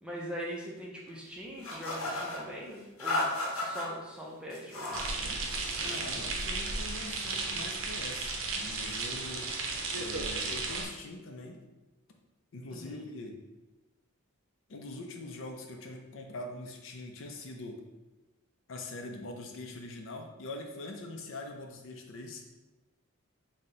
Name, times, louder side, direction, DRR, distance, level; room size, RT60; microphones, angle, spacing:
voice 1, 0.0-5.2 12.7-13.0, equal, 5° right, -4 dB, 0.5 m, -42 dB
sound 1, 1.6-2.4 3.0-3.9 4.5-5.1 5.5-6.0, left 2 dB, 85° left, 0.8 m, -34 dB
sound 2, 4.9-10.8, right 3 dB, 65° right, 0.6 m, -34 dB
voice 2, 5.8-11.6 12.5-13.4 14.7-17.8 18.7-22.4, left 2 dB, 65° left, 3 dB, 0.5 m, -43 dB
4.2 x 2.1 x 3.7 m, 1.1 s
head